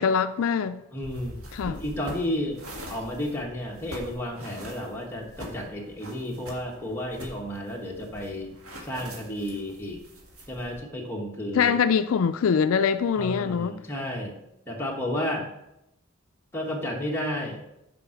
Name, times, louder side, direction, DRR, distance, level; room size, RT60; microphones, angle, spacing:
voice 1, 0.0-0.8 1.5-1.8 11.5-13.8, left 6 dB, 75° left, 0.4 m, -23 dB
voice 2, 0.9-1.4 1.6-2.6 2.9-8.5 8.8-10.0 10.5-11.7 13.2-14.4 14.7-15.5 16.5-17.6, left 1 dB, 10° left, 1.3 m, -32 dB
sound 1, 1.0-10.8, equal, 90° right, 1.8 m, -44 dB
7.1 x 4.9 x 5.7 m
head